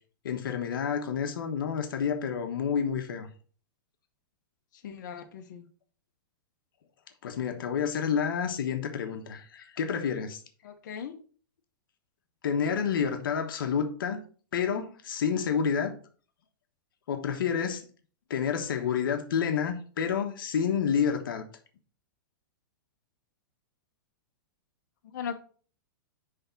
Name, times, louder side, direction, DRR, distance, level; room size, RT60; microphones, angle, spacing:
voice 1, 0.2-3.3 7.2-10.4 12.4-14.2 14.5-15.9 17.1-17.8 18.3-21.4, left 7 dB, 75° left, 1.2 m, -29 dB
voice 2, 4.8-5.7 10.6-11.2 25.0-25.3, left 7 dB, 60° left, 1.2 m, -38 dB
9.8 x 3.6 x 4.4 m
hypercardioid pair, 155°, 11 cm